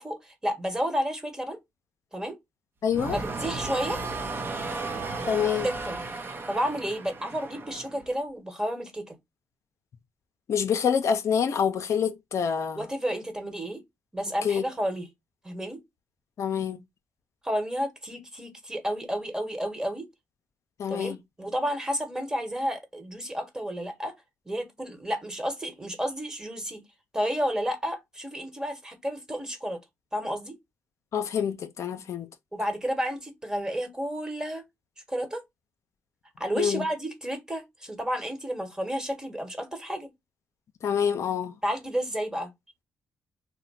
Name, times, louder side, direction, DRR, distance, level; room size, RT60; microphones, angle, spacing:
voice 1, 0.0-1.6 2.1-2.4 3.1-4.0 5.6-6.0 6.5-9.2 12.7-13.8 14.1-15.1 15.4-15.8 17.4-20.1 20.9-24.1 24.4-26.8 27.1-29.8 30.1-30.6 32.5-34.6 35.1-35.4 36.4-40.1 41.6-42.5, equal, 15° right, 1.2 m, -31 dB
voice 2, 2.8-3.2 5.3-5.7 10.5-12.8 14.4-14.6 16.4-16.8 20.8-21.2 31.1-32.3 36.6-36.8 40.8-41.5, left 7 dB, 65° left, 0.5 m, -26 dB
sound 1, 2.9-8.1, right 3 dB, 40° right, 0.7 m, -34 dB
2.9 x 2.1 x 4.0 m
cardioid pair, 75°, 5 cm